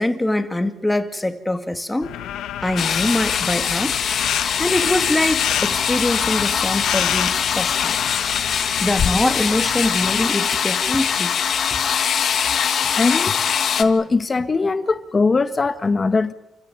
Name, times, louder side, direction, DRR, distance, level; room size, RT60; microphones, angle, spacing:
voice 1, 0.0-2.1 2.6-3.9 4.6-8.0 8.8-11.3, left 1 dB, 10° left, 2.3 m, -23 dB
sound 1, 2.0-10.3, left 11 dB, 85° left, 1.5 m, -31 dB
sound 2, 2.8-13.8, left 7 dB, 60° left, 1.8 m, -22 dB
voice 2, 12.9-13.4 13.8-16.3, left 4 dB, 30° left, 1.4 m, -20 dB
28.5 x 15.5 x 8.9 m
cardioid pair, 90°, 0 cm